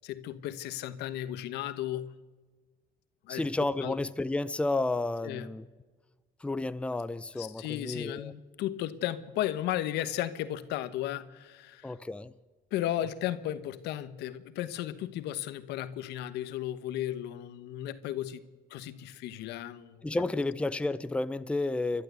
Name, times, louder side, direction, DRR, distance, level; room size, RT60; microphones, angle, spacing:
voice 1, 0.0-2.2 3.2-3.5 3.8-4.0 5.2-5.5 7.4-11.9 12.7-18.4 18.7-20.1, left 12 dB, 85° left, 1.2 m, -35 dB
voice 2, 3.3-5.6 6.4-8.3 11.8-12.3 20.0-22.0, left 2 dB, 5° left, 0.6 m, -31 dB
29.5 x 12.5 x 8.2 m
cardioid pair, 110°, 17 cm